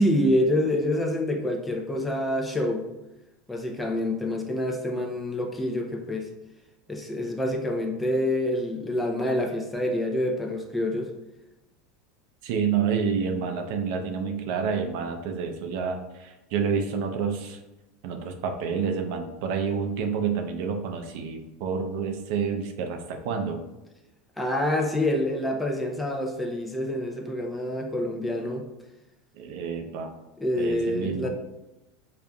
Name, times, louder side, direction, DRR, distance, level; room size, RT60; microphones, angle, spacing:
voice 1, 0.0-2.8 3.5-6.3 6.9-11.1 24.4-28.7 30.4-31.3, left 1 dB, 10° left, 2 dB, 0.5 m, -27 dB
voice 2, 12.4-17.6 18.0-23.6 29.4-30.1 30.6-31.3, right 6 dB, 65° right, 4 dB, 0.5 m, -29 dB
5.3 x 2.4 x 2.2 m, 0.99 s
supercardioid pair, 135°, 0 cm